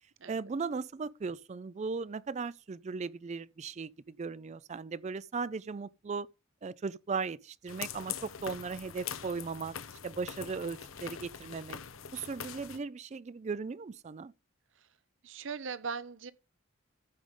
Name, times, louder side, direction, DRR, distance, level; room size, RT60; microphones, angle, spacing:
voice 1, 0.3-6.3 6.6-9.7 10.0-11.8 12.1-14.3, right 4 dB, 35° right, 0.4 m, -37 dB
sound 1, 7.7-12.8, left 8 dB, 85° left, 0.9 m, -43 dB
voice 2, 15.2-16.3, right 5 dB, 65° right, 0.8 m, -39 dB
14.5 x 5.2 x 3.7 m
head